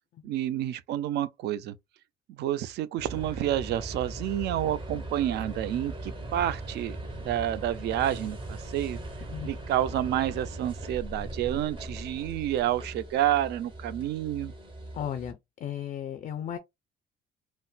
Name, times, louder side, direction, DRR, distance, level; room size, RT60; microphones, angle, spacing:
voice 1, 0.2-1.8 2.4-7.0 7.2-9.0 9.4-14.5, right 12 dB, 65° right, 0.4 m, -29 dB
sound 1, 3.0-15.3, right 2 dB, 25° right, 0.9 m, -39 dB
voice 2, 14.9-16.6, left 9 dB, 40° left, 0.4 m, -35 dB
4.0 x 2.1 x 2.2 m
cardioid pair, 155°, 19 cm